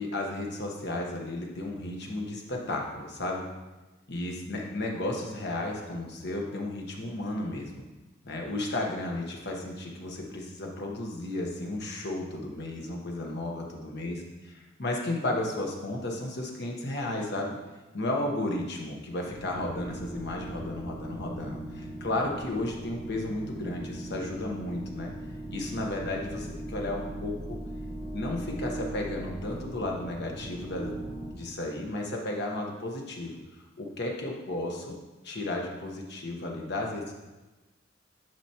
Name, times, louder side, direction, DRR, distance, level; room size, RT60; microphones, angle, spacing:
voice 1, 0.0-3.5 4.1-7.8 8.2-14.2 14.8-17.6 17.9-25.1 25.5-27.6 28.1-30.9 31.4-33.4 33.8-35.0 35.2-37.1, left 1 dB, 60° left, 0 dB, 1.2 m, -33 dB
sound 1, 19.2-31.3, right 1 dB, 25° left, 2.4 m, -39 dB
10.5 x 5.1 x 2.9 m, 1.1 s
head